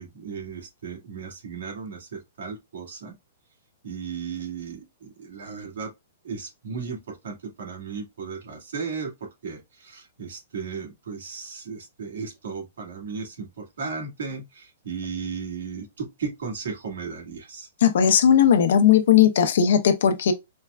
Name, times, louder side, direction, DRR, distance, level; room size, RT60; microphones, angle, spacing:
voice 1, 0.0-3.2 3.8-5.9 6.2-17.7, right 5 dB, 85° right, 1.8 m, -35 dB
voice 2, 17.8-20.3, left 8 dB, 70° left, 0.7 m, -17 dB
4.4 x 2.2 x 2.3 m
hypercardioid pair, 150°, 0 cm